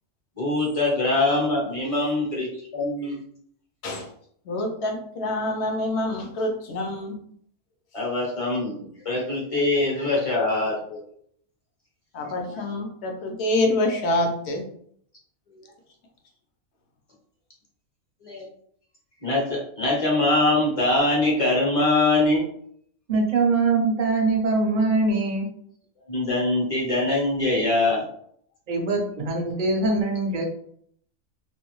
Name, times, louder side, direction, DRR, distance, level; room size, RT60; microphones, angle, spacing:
voice 1, 0.4-2.5 2.7-3.2 7.9-11.0 12.5-12.7 18.2-18.5 19.2-22.4 26.1-28.0, left 2 dB, 30° left, -4 dB, 0.7 m, -23 dB
voice 2, 4.5-7.2 12.1-14.7, left 1 dB, 65° left, 3 dB, 0.8 m, -26 dB
voice 3, 23.1-25.5 28.7-30.4, right 3 dB, 55° right, 1 dB, 0.6 m, -22 dB
2.5 x 2.2 x 3.0 m, 0.64 s
omnidirectional pair, 1.4 m